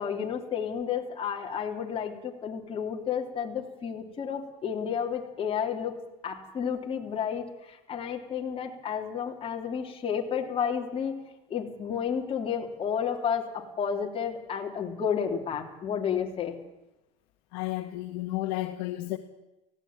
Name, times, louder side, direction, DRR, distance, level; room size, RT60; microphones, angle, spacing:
voice 1, 0.0-6.0 6.2-11.2 11.5-16.6, left 7 dB, 30° left, 1 dB, 3.3 m, -31 dB
voice 2, 17.5-19.2, left 16 dB, 65° left, 5 dB, 1.7 m, -32 dB
18.0 x 16.5 x 9.1 m, 0.99 s
supercardioid pair, 125°, 20 cm